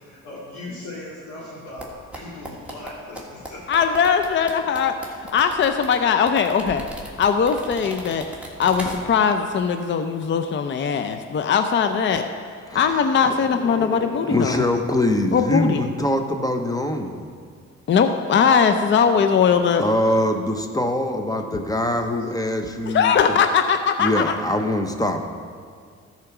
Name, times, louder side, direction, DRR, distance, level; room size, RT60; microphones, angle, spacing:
voice 1, 0.0-3.8 13.1-13.9 18.9-19.6 22.2-22.3, left 2 dB, 90° left, -9 dB, 2.4 m, -39 dB
sound 1, 1.8-9.3 9.6-9.8, right 1 dB, 5° right, 1.7 m, -38 dB
voice 2, 3.7-4.9 5.3-8.2 8.6-12.2 12.7-14.6 15.3-15.8 17.9-19.8 22.9-24.3, left 6 dB, 40° left, 7 dB, 0.5 m, -20 dB
voice 3, 13.6-17.3 19.8-23.4 24.0-25.2, left 1 dB, 10° left, 5 dB, 0.9 m, -23 dB
13.5 x 4.4 x 5.9 m, 2.1 s
cardioid pair, 90°, 30 cm